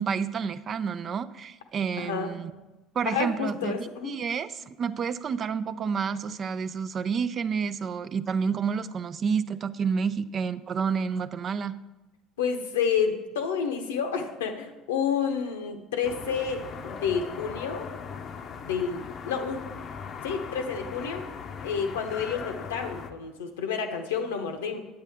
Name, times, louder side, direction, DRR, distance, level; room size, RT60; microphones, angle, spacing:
voice 1, 0.0-2.5 2.9-3.7 4.0-11.7, right 6 dB, 45° right, 14 dB, 0.4 m, -29 dB
voice 2, 2.0-2.3 3.1-4.1 12.4-17.9 18.6-19.6 20.2-21.2 21.6-24.8, left 6 dB, 85° left, 5 dB, 0.9 m, -29 dB
sound 1, 16.0-23.1, left 6 dB, 50° left, 0.6 m, -39 dB
8.8 x 8.2 x 3.5 m, 1.1 s
hypercardioid pair, 70°, 0 cm